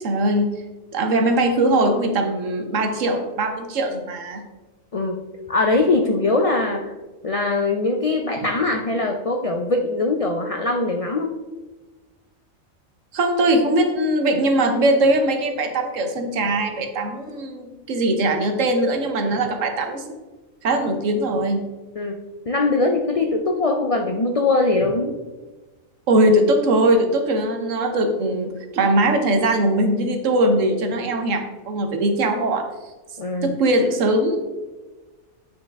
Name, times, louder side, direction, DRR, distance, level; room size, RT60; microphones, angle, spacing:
voice 1, 0.0-0.5 0.9-4.4 13.1-20.0 20.6-21.6 26.1-32.7 33.4-34.4, right 1 dB, 70° right, 5 dB, 1.3 m, -20 dB
voice 2, 5.5-6.9 7.2-11.4 22.0-22.2 22.5-25.1 33.2-33.6, left 2 dB, 60° left, 3 dB, 0.3 m, -21 dB
8.9 x 4.7 x 3.5 m, 1.2 s
omnidirectional pair, 1.4 m